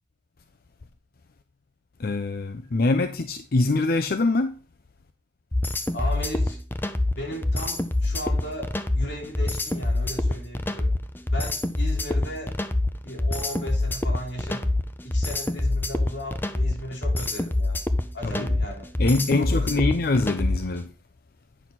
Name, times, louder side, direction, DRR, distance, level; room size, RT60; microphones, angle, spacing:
voice 1, 2.0-4.6 18.2-18.5 19.0-20.9, left 2 dB, 55° left, 0.6 m, -24 dB
sound 1, 5.5-20.8, left 2 dB, 10° left, 0.6 m, -25 dB
voice 2, 5.9-6.6 7.1-10.9 11.3-12.6 13.0-17.8 18.1-18.9 19.4-19.9, equal, 85° left, 3.3 m, -36 dB
9.1 x 6.0 x 4.0 m
head